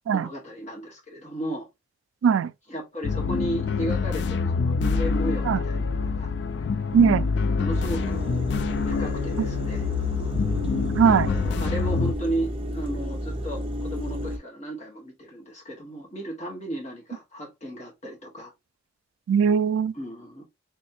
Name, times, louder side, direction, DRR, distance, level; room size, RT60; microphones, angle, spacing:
voice 1, 0.0-1.7 2.7-6.3 6.7-6.8 7.6-8.3 8.9-9.9 11.1-18.5 19.9-20.4, right 1 dB, 35° left, 1.4 m, -34 dB
sound 1, 3.0-12.1, left 5 dB, 60° left, 0.3 m, -26 dB
voice 2, 6.9-7.3 10.9-11.3 19.3-19.9, right 7 dB, 90° right, 0.3 m, -20 dB
fridge back, 7.7-14.4, equal, 30° right, 0.5 m, -32 dB
3.5 x 3.1 x 2.7 m
head